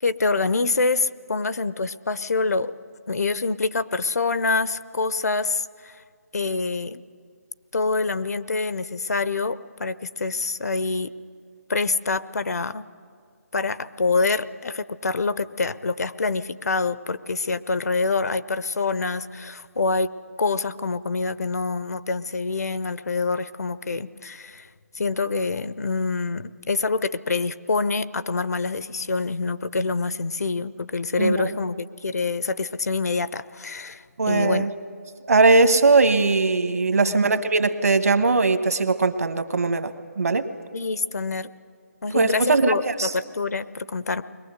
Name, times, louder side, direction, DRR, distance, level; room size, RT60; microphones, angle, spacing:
voice 1, 0.0-2.7 3.1-6.0 6.3-7.0 7.7-11.1 11.7-12.9 13.5-20.1 20.4-24.7 24.9-34.7 37.0-37.4 40.7-41.5 42.0-44.2, left 3 dB, 75° left, 15 dB, 0.7 m, -26 dB
voice 2, 31.2-31.5 34.2-34.7 35.3-40.5 42.1-43.1, right 3 dB, 65° right, 10 dB, 1.3 m, -20 dB
21.5 x 19.0 x 8.0 m, 2.2 s
hypercardioid pair, 170°, 9 cm